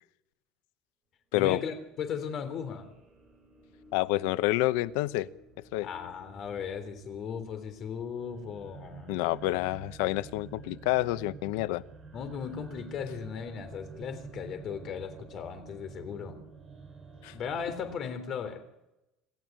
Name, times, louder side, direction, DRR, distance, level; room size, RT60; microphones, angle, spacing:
voice 1, 1.3-2.9 5.8-9.2 12.1-16.4 17.3-18.6, left 7 dB, 35° left, 9 dB, 3.5 m, -37 dB
sound 1, 1.9-18.0, right 4 dB, 20° right, 6.6 m, -50 dB
voice 2, 3.9-5.3 5.7-5.9 9.1-11.8 17.2-17.3, left 17 dB, 80° left, 16 dB, 0.8 m, -28 dB
27.0 x 14.0 x 9.1 m, 0.91 s
cardioid pair, 180°, 0 cm